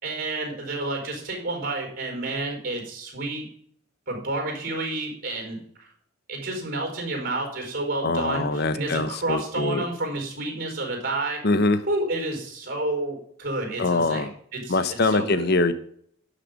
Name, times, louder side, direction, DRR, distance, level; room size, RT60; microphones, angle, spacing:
voice 1, 0.0-3.5 4.1-5.6 6.3-11.4 11.9-14.2 14.5-15.4, right 2 dB, 45° right, 2 dB, 4.8 m, -30 dB
voice 2, 8.0-9.8 11.4-11.8 13.8-14.3 14.7-15.7, left 3 dB, 55° left, 12 dB, 0.8 m, -23 dB
11.5 x 6.5 x 5.2 m, 0.64 s
head